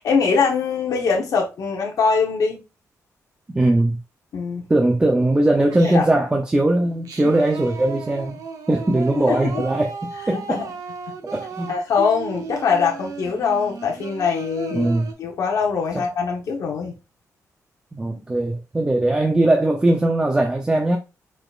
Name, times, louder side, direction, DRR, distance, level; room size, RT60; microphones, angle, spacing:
voice 1, 0.0-2.6 4.3-4.7 5.8-6.1 9.3-9.7 10.3-10.6 11.1-11.2 11.7-14.9 15.2-17.0, left 5 dB, 70° left, 1.0 m, -22 dB
voice 2, 3.5-4.0 4.7-8.4 8.7-10.0 10.3-10.6 11.2-11.7 14.7-15.1 17.9-21.0, right 1 dB, 15° right, 0.6 m, -20 dB
Singing, 5.7-6.3 6.8-15.1, right 5 dB, 70° right, 0.9 m, -35 dB
4.9 x 4.2 x 2.4 m
wide cardioid pair, 150°, 6 cm